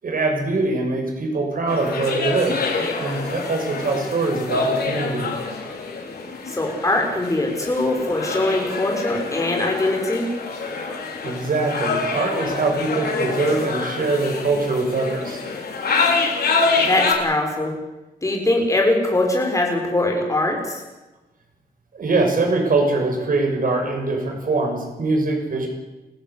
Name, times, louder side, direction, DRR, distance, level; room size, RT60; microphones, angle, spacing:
voice 1, 0.0-5.3 11.2-15.4 21.9-25.7, right 3 dB, 60° right, 3 dB, 6.2 m, -23 dB
sound 1, 1.7-17.1, left 4 dB, 75° left, 5.1 m, -26 dB
voice 2, 6.5-10.3 16.8-17.7 18.2-20.8, left 2 dB, 20° left, 1 dB, 6.4 m, -22 dB
30.0 x 15.5 x 8.3 m, 1.1 s
wide cardioid pair, 155°, 16 cm